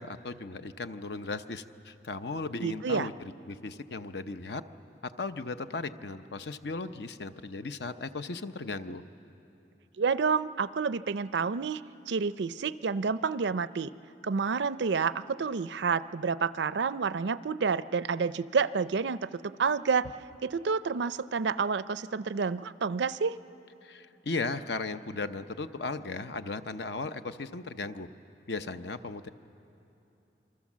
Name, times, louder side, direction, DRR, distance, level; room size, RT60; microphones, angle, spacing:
voice 1, 0.0-4.6 5.0-9.0 23.8-28.1 28.5-29.3, left 3 dB, 70° left, 10 dB, 0.8 m, -36 dB
voice 2, 2.6-3.1 10.0-11.8 12.1-13.9 14.2-20.1 20.4-23.4, right 5 dB, 80° right, 15 dB, 0.5 m, -29 dB
27.0 x 24.5 x 7.4 m, 2.9 s
head